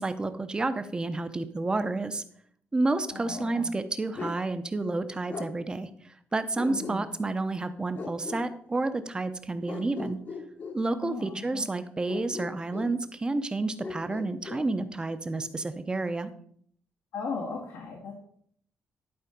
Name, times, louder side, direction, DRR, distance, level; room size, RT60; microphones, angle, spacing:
voice 1, 0.0-2.2 2.7-5.9 6.3-10.2 10.7-16.3, right 2 dB, 20° right, 10 dB, 0.7 m, -30 dB
voice 2, 3.1-3.7 6.7-7.1 11.0-11.7 17.1-18.1, left 4 dB, 85° left, -1 dB, 1.8 m, -37 dB
Bark, 4.1-4.4 5.3-5.5 6.6-7.3 7.9-8.5 9.7-10.8 12.1-13.0 13.8-14.7, left 4 dB, 45° left, 1.1 m, -38 dB
11.5 x 4.4 x 5.1 m, 0.63 s
cardioid pair, 115°, 4 cm